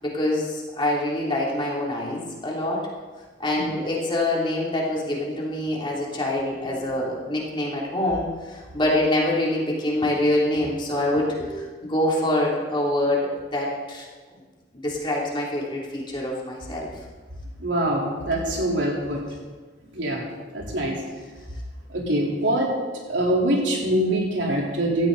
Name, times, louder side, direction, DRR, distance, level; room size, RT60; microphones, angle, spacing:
voice 1, 0.0-2.9 3.4-14.1 14.7-16.9, left 1 dB, 25° left, -4 dB, 3.3 m, -25 dB
voice 2, 17.6-19.2 19.9-20.2 20.5-20.9 21.9-22.7 23.1-25.1, right 1 dB, 80° right, -3 dB, 3.9 m, -24 dB
16.5 x 13.5 x 4.1 m, 1.4 s
head